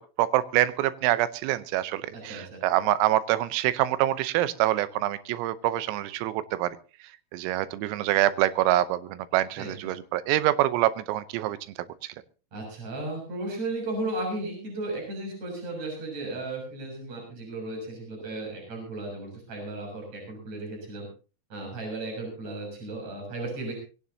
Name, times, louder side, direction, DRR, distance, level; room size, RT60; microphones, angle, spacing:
voice 1, 0.2-6.8 7.3-11.6 12.0-12.1, right 14 dB, 85° right, 14 dB, 3.5 m, -25 dB
voice 2, 2.1-2.6 9.6-9.9 12.5-21.1 21.5-23.7, right 2 dB, 30° right, 1 dB, 7.8 m, -35 dB
21.5 x 17.0 x 2.8 m, 0.35 s
omnidirectional pair, 6.0 m